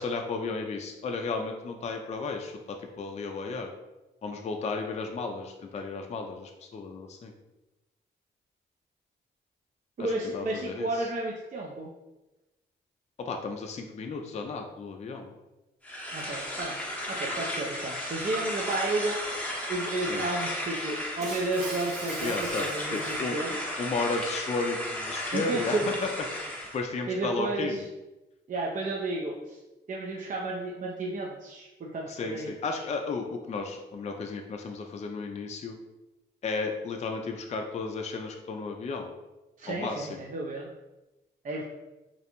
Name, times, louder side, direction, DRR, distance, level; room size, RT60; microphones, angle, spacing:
voice 1, 0.0-3.7 4.2-7.3 10.0-11.1 13.2-15.3 20.0-20.3 22.2-23.4 23.8-25.9 26.3-27.8 32.1-35.8 36.4-39.1 39.7-40.2, left 4 dB, 35° left, 3 dB, 0.3 m, -34 dB
voice 2, 10.0-11.9 16.1-16.8 17.1-19.2 19.7-23.6 25.3-25.9 27.1-27.8 28.5-29.6 29.9-32.8 39.6-40.7 41.4-41.6, right 2 dB, 40° right, -2 dB, 0.5 m, -32 dB
sound 1, 15.8-26.8, left 1 dB, 5° left, 0.7 m, -34 dB
Shatter, 21.2-23.6, right 2 dB, 85° right, 0.7 m, -42 dB
2.5 x 2.0 x 2.9 m, 1.0 s
supercardioid pair, 45°, 21 cm